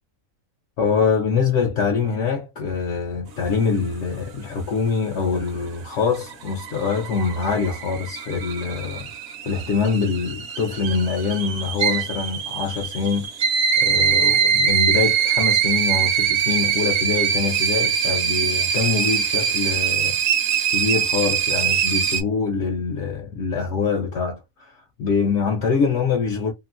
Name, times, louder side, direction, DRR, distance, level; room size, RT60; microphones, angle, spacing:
voice 1, 0.8-9.1 9.4-13.3 13.8-20.2 20.7-26.5, left 5 dB, 65° left, 0.8 m, -24 dB
sound 1, 5.9-22.2, right 7 dB, 60° right, 0.8 m, -23 dB
2.9 x 2.5 x 2.4 m
omnidirectional pair, 1.4 m